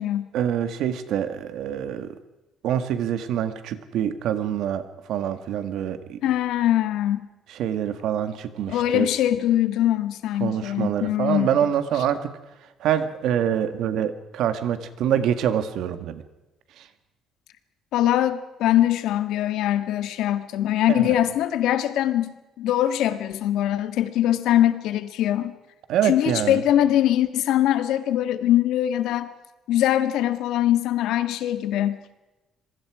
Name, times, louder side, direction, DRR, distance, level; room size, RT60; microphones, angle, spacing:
voice 1, 0.3-2.2 2.6-4.8 5.1-6.2 7.5-9.1 10.4-12.3 12.8-16.2 16.8-16.9 20.9-21.2 25.9-26.6, right 9 dB, 70° right, 10 dB, 1.8 m, -25 dB
voice 2, 6.2-7.3 8.7-11.7 17.9-22.3 22.6-25.5 26.0-29.3 29.7-32.0, left 12 dB, 80° left, 11 dB, 1.6 m, -22 dB
26.0 x 23.0 x 4.9 m, 1.0 s
cardioid pair, 165°, 0 cm